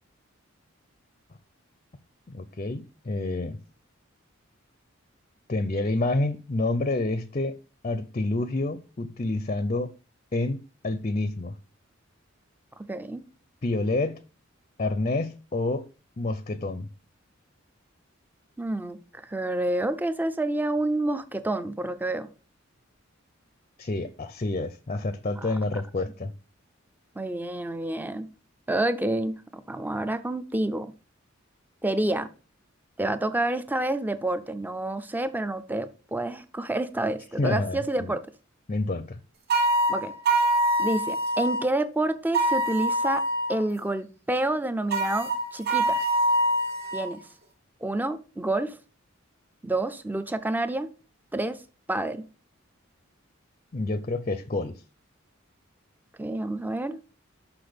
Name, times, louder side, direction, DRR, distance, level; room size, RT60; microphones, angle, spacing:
voice 1, 2.3-3.6 5.5-9.9 10.3-11.6 13.6-14.2 14.8-15.9 16.2-16.9 23.8-26.3 37.4-38.1 38.7-39.2 53.7-54.8, left 2 dB, 35° left, 0.6 m, -28 dB
voice 2, 12.8-13.2 18.6-22.3 27.2-28.3 28.7-30.9 31.8-32.3 33.0-38.2 39.9-40.1 40.8-43.2 43.5-46.0 46.9-47.2 47.8-48.8 49.6-50.9 51.3-51.6 51.9-52.2 56.2-57.0, right 1 dB, 10° right, 0.6 m, -28 dB
sound 1, 39.5-41.6 42.3-43.6 44.9-47.1, right 1 dB, 50° right, 1.3 m, -24 dB
6.0 x 5.9 x 5.1 m
head